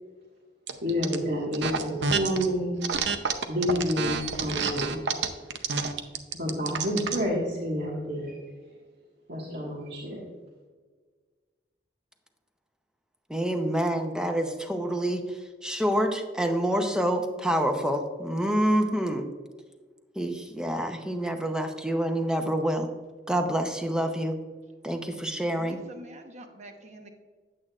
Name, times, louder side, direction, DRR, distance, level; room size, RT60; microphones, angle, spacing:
sound 1, 0.7-1.2 1.5-2.5 2.8-7.2, right 5 dB, 85° right, 0.6 m, -28 dB
voice 1, 0.8-2.8 3.5-5.1 6.3-8.4 9.3-10.2, equal, 65° right, -6 dB, 1.6 m, -29 dB
voice 2, 13.3-15.2 15.6-19.2 20.2-22.9 23.3-24.3 24.8-25.8, right 1 dB, 5° right, 5 dB, 0.7 m, -27 dB
voice 3, 25.5-27.1, right 1 dB, 40° right, 5 dB, 1.0 m, -46 dB
8.6 x 8.6 x 2.4 m, 1.5 s
head